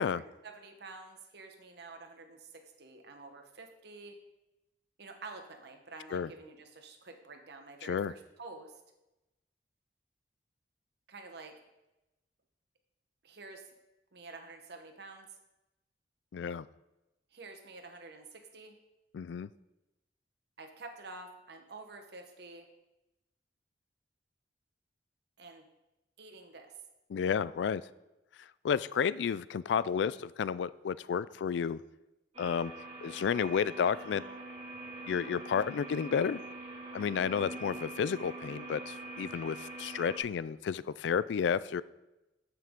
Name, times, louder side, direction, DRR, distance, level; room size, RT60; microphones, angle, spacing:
voice 1, 0.0-4.2 5.0-8.8 11.1-11.5 13.2-13.6 14.1-15.3 17.3-18.8 20.6-22.7 25.4-25.7 26.2-26.8, right 3 dB, 65° right, 5 dB, 1.0 m, -49 dB
voice 2, 7.8-8.1 16.3-16.7 19.1-19.5 27.1-27.8 28.6-31.8 32.4-32.7 33.0-34.2 35.1-36.4 36.9-41.8, left 7 dB, 75° left, 18 dB, 0.3 m, -31 dB
sound 1, 32.3-40.2, right 2 dB, 35° right, 1.9 m, -44 dB
14.0 x 5.9 x 3.7 m, 0.99 s
head